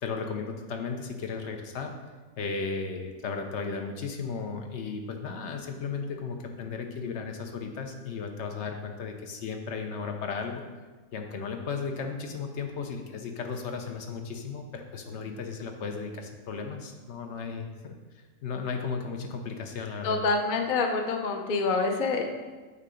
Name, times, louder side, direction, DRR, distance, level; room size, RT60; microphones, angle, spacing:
voice 1, 0.0-1.9 2.4-10.6 11.1-18.0 18.4-20.2, left 5 dB, 60° left, 4 dB, 0.8 m, -35 dB
voice 2, 20.0-22.2, left 3 dB, 80° left, 3 dB, 0.4 m, -26 dB
8.3 x 2.8 x 5.0 m, 1.3 s
omnidirectional pair, 1.6 m